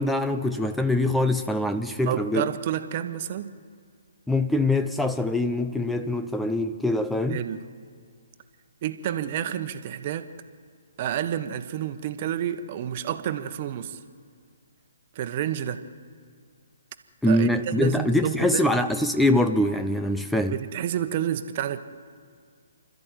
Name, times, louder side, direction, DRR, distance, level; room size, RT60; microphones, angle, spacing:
voice 1, 0.0-2.5 4.3-7.4 17.2-20.6, left 1 dB, 5° left, 8 dB, 0.7 m, -24 dB
voice 2, 2.0-3.5 7.3-7.6 8.8-10.3 11.0-14.0 15.1-15.9 17.2-18.8 20.5-21.8, right 10 dB, 40° right, 10 dB, 1.3 m, -30 dB
29.5 x 13.0 x 9.2 m, 2.1 s
figure-of-eight pair, 135°, 0 cm